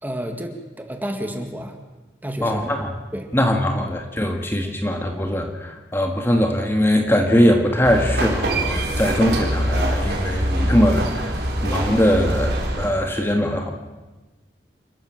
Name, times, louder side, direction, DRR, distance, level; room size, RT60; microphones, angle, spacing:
voice 1, 0.0-1.8 2.2-2.6 3.1-3.3 4.6-5.0, equal, 10° right, 4 dB, 2.0 m, -31 dB
voice 2, 2.4-2.9 3.3-11.4 11.6-13.7, equal, 15° left, 3 dB, 1.8 m, -21 dB
sound 1, 7.8-12.9, right 1 dB, 65° right, 4.0 m, -23 dB
29.0 x 13.5 x 7.4 m, 1.2 s
head